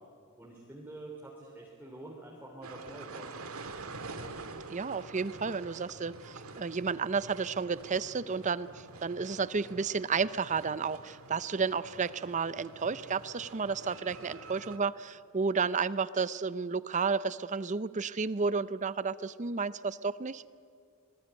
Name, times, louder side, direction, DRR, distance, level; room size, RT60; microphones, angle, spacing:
voice 1, 0.4-3.9, right 2 dB, 10° right, -3 dB, 3.3 m, -47 dB
sound 1, 2.6-14.8, right 3 dB, 85° right, 1.8 m, -47 dB
voice 2, 4.7-8.7 9.0-20.4, right 5 dB, 35° right, 16 dB, 0.6 m, -32 dB
26.0 x 20.0 x 9.6 m, 2.3 s
head